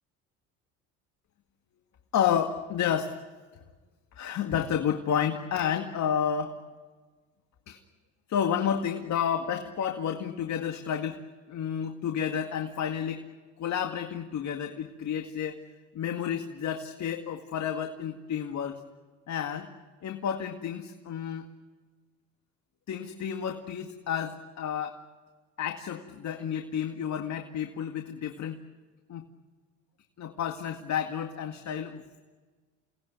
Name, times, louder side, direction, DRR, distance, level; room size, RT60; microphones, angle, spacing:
voice 1, 2.1-3.2 4.2-6.6 7.7-7.8 8.3-11.2 11.5-13.2 13.6-15.6 15.9-18.8 19.3-19.7 20.0-21.5 22.9-25.0 25.6-28.6 29.1-29.3 30.2-32.0, left 8 dB, 50° left, 5 dB, 2.1 m, -30 dB
29.0 x 19.0 x 9.6 m, 1.4 s
hypercardioid pair, 75°, 36 cm